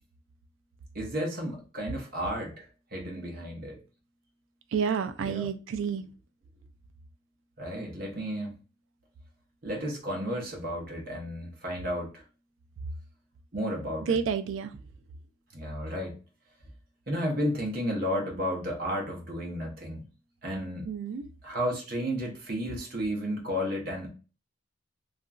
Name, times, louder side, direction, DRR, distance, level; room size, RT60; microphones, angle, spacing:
voice 1, 0.9-2.6 2.9-3.8 5.2-5.5 7.6-8.5 9.6-12.1 13.5-14.2 15.5-16.1 17.1-20.0 20.4-20.9 21.4-24.1, equal, 45° right, 0 dB, 0.8 m, -32 dB
voice 2, 4.7-6.0 14.0-14.8 20.9-21.3, right 6 dB, 75° right, 9 dB, 0.4 m, -29 dB
2.9 x 2.4 x 2.3 m, 0.34 s
head